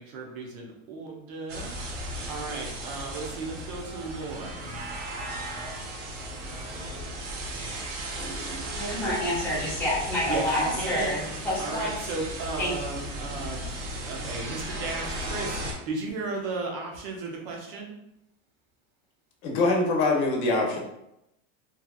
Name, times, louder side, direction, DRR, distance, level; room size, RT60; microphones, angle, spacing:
voice 1, 0.0-4.6 10.2-11.2 11.6-18.0, right 3 dB, 50° right, -1 dB, 0.7 m, -35 dB
sound 1, 1.5-15.7, right 1 dB, 80° right, 0.7 m, -36 dB
voice 2, 8.2-12.1 12.6-12.7, left 1 dB, 5° left, -9 dB, 0.6 m, -29 dB
voice 3, 19.4-20.8, left 2 dB, 65° left, 0 dB, 0.8 m, -23 dB
2.8 x 2.4 x 2.3 m, 0.83 s
supercardioid pair, 170°, 37 cm